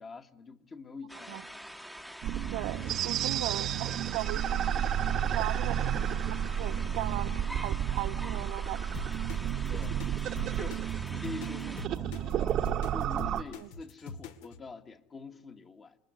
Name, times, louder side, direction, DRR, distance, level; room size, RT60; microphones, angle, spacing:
voice 1, 0.0-1.7 9.7-10.2 10.6-10.8 11.1-12.6 12.9-16.0, left 4 dB, 25° left, 1.4 m, -45 dB
sound 1, 1.1-11.9, equal, ahead, 1.1 m, -46 dB
sound 2, 2.2-13.4, right 9 dB, 45° right, 1.1 m, -31 dB
voice 2, 2.5-4.7 5.3-6.1 6.6-8.8 13.5-13.7, right 17 dB, 70° right, 1.2 m, -38 dB
sound 3, 8.9-14.6, left 5 dB, 80° left, 1.9 m, -43 dB
27.5 x 21.5 x 9.4 m
supercardioid pair, 120°, 0 cm